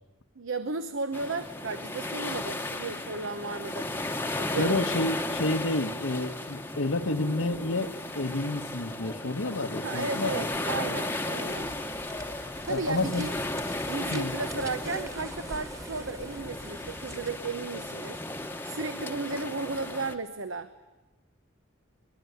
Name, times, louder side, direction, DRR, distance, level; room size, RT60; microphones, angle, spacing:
voice 1, 0.4-3.9 4.4-4.8 9.8-11.7 12.6-13.3 13.9-18.2 18.6-20.7, right 3 dB, 75° right, 11 dB, 0.9 m, -34 dB
sound 1, 1.1-20.2, left 2 dB, 10° left, 1.0 m, -35 dB
voice 2, 4.6-10.4 12.7-13.2 14.1-14.4, left 2 dB, 80° left, 6 dB, 1.2 m, -30 dB
sound 2, 11.4-17.5, right 1 dB, 15° right, 1.6 m, -45 dB
22.5 x 21.5 x 9.3 m, 1.1 s
head